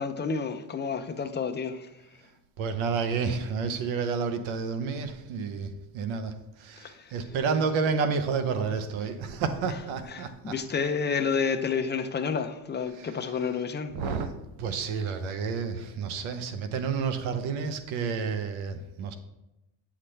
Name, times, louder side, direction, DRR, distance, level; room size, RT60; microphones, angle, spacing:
voice 1, 0.0-1.9 6.8-7.2 10.1-14.0, left 5 dB, 25° left, 0.5 m, -30 dB
voice 2, 2.6-10.5 13.0-13.1 13.9-14.3 14.6-19.1, right 5 dB, 80° right, 0.9 m, -30 dB
8.1 x 5.9 x 3.3 m
cardioid pair, 105°, 47 cm